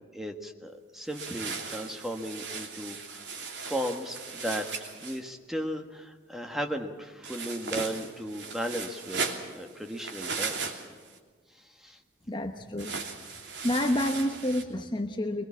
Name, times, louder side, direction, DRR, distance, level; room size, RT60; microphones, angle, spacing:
voice 1, 0.0-3.2 3.6-4.6 5.0-9.2 9.5-10.5 11.8-12.0, equal, ahead, 4 dB, 1.6 m, -35 dB
sound 1, 1.1-5.2 7.2-11.2 12.8-14.6, right 4 dB, 80° right, 2.9 m, -37 dB
voice 2, 12.3-12.9 13.6-15.4, left 1 dB, 25° left, 5 dB, 0.9 m, -29 dB
23.0 x 22.0 x 7.2 m, 1.5 s
head